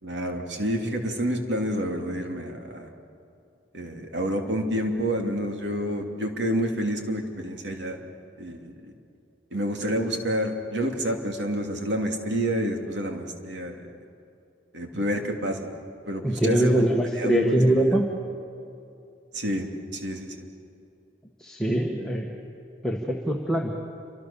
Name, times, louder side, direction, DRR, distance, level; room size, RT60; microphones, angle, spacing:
voice 1, 0.0-2.9 3.7-8.0 8.4-8.9 9.5-13.9 14.7-15.7 16.1-16.8 17.1-18.0 19.3-20.5, equal, 70° right, 3 dB, 3.0 m, -29 dB
voice 2, 16.2-18.1 21.4-22.4 22.8-23.7, right 1 dB, 5° left, -1 dB, 1.6 m, -23 dB
28.5 x 25.0 x 7.1 m, 2.6 s
head